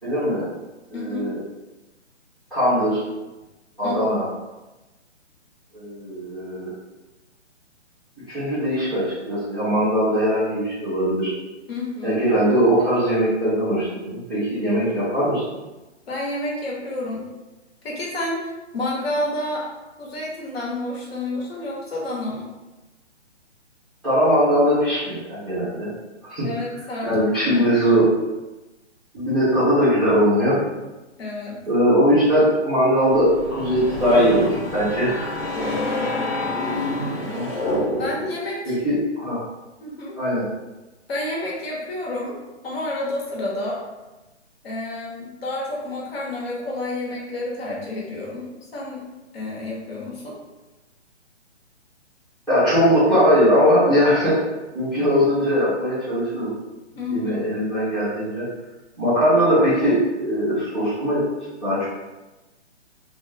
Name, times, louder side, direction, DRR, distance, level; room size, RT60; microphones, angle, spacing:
voice 1, 0.0-0.4 0.9-1.4 2.5-3.0 3.8-4.3 5.7-6.7 8.3-11.3 12.0-15.4 24.0-25.9 26.3-26.5 27.0-28.1 29.1-30.6 31.7-35.4 37.2-37.5 38.6-39.4 40.2-40.5 52.5-54.3 54.7-56.5 57.1-58.4 59.0-61.2 61.6-61.9, equal, ahead, -16 dB, 0.7 m, -20 dB
voice 2, 0.9-1.3 3.8-4.0 11.7-12.2 16.1-17.2 17.8-19.7 20.0-22.5 26.4-27.1 27.4-27.6 31.2-31.6 35.5-36.2 37.9-38.8 39.8-40.2 41.1-43.8 44.6-49.0 49.3-50.4 56.9-57.4, left 1 dB, 55° left, -4 dB, 1.1 m, -30 dB
Invisibility Spell, 33.1-38.4, left 1 dB, 80° left, 1.2 m, -27 dB
2.6 x 2.3 x 3.4 m, 1.1 s
hypercardioid pair, 160°, 36 cm